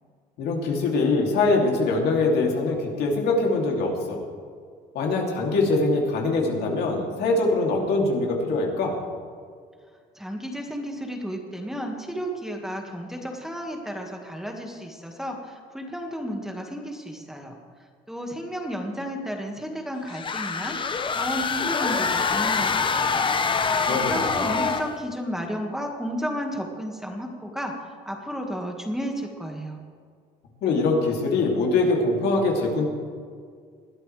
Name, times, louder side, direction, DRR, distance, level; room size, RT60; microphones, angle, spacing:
voice 1, 0.4-4.2 4.9-9.0 23.9-24.6 30.6-32.8, left 3 dB, 75° left, 0 dB, 3.0 m, -23 dB
voice 2, 10.2-17.6 18.1-20.8 21.1-23.2 23.9-27.7 28.1-29.8, equal, ahead, 1 dB, 1.9 m, -32 dB
sound 1, 20.1-25.0, left 5 dB, 30° left, 0.8 m, -25 dB
20.5 x 12.5 x 3.4 m, 2.1 s
cardioid pair, 110°, 17 cm